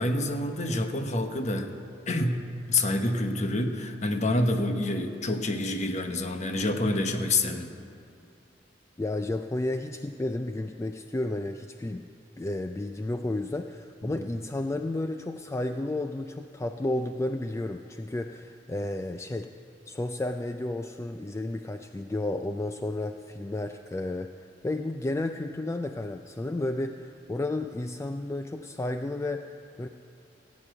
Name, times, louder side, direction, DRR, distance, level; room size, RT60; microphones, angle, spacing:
voice 1, 0.0-1.7 2.1-7.7 14.0-14.2, left 2 dB, 40° left, 5 dB, 1.0 m, -27 dB
voice 2, 9.0-12.1 12.4-19.5 19.9-29.9, left 2 dB, 15° left, 7 dB, 0.3 m, -32 dB
17.0 x 8.4 x 7.8 m, 2.5 s
head